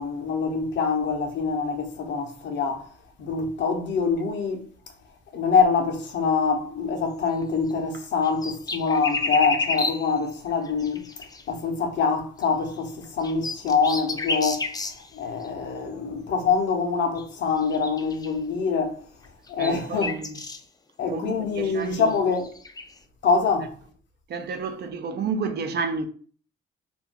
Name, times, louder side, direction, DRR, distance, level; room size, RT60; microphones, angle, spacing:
voice 1, 0.0-2.9 3.2-4.6 5.3-19.0 19.5-20.2 21.0-22.5 23.2-23.7, left 5 dB, 65° left, 0.7 m, -25 dB
sound 1, 7.3-7.4 7.7-7.8 8.2-10.2 10.7-11.4 12.4-12.5 13.0-15.1 15.4-15.5 17.2-17.3 17.6-18.3 19.2-20.6 21.8-22.9, left 3 dB, 20° left, 0.4 m, -31 dB
voice 2, 19.6-20.4 21.1-22.1 24.3-26.0, right 5 dB, 55° right, 0.5 m, -30 dB
2.5 x 2.2 x 3.4 m
cardioid pair, 90°, 20 cm